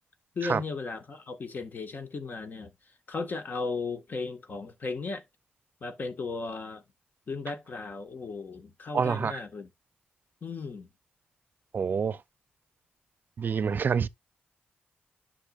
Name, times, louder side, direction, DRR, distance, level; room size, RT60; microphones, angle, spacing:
voice 1, 0.3-2.7 3.1-5.2 5.8-6.8 7.3-9.7 10.4-10.9, left 4 dB, 50° left, 1.6 m, -36 dB
voice 2, 8.9-9.4 11.7-12.2 13.4-14.1, right 6 dB, 55° right, 0.5 m, -27 dB
10.0 x 5.9 x 2.5 m
cardioid pair, 65°, 4 cm